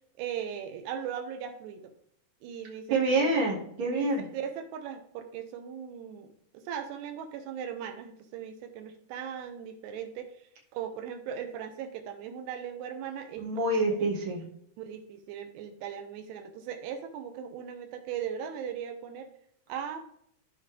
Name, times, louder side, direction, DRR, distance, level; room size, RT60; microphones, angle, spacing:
voice 1, 0.2-1.9 2.4-3.3 3.9-13.6 14.8-19.3 19.7-20.0, right 8 dB, 85° right, 7 dB, 3.0 m, -38 dB
voice 2, 2.9-4.2 13.4-14.4, right 2 dB, 40° right, -2 dB, 2.3 m, -27 dB
14.0 x 5.0 x 3.6 m, 0.69 s
omnidirectional pair, 4.7 m